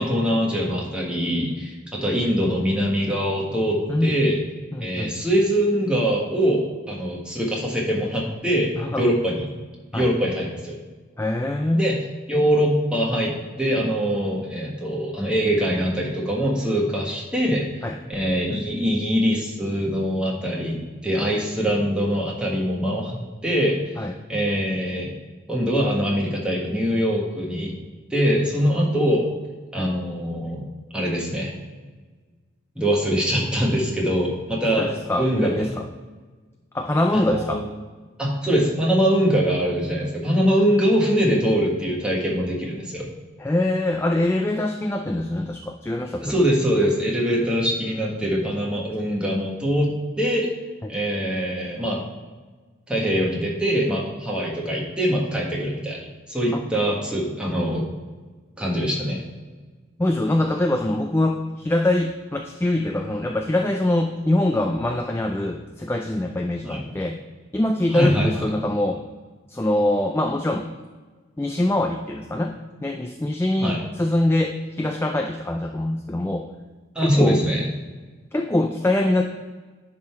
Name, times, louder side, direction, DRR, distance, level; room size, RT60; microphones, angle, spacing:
voice 1, 0.0-4.4 4.8-8.7 9.0-9.5 9.9-10.8 11.7-12.0 12.3-17.7 18.1-23.2 23.4-25.1 25.5-27.7 28.1-29.2 29.7-30.6 30.9-31.5 32.7-34.9 35.2-35.7 37.1-37.7 38.2-43.1 46.2-50.5 50.9-52.0 52.9-57.8 58.6-59.2 66.6-66.8 67.9-68.4 73.6-73.8 76.9-77.7, equal, 5° right, -4 dB, 1.4 m, -23 dB
voice 2, 4.7-5.1 8.8-9.1 9.9-10.1 11.2-11.9 17.8-18.0 24.0-24.1 29.8-29.9 34.8-35.9 36.7-37.6 43.4-46.4 56.5-56.6 60.0-67.2 67.5-69.0 69.5-70.7 71.4-76.5 77.0-77.4 78.3-79.2, left 1 dB, 10° left, 4 dB, 0.3 m, -23 dB
10.5 x 3.7 x 4.4 m, 1.4 s
head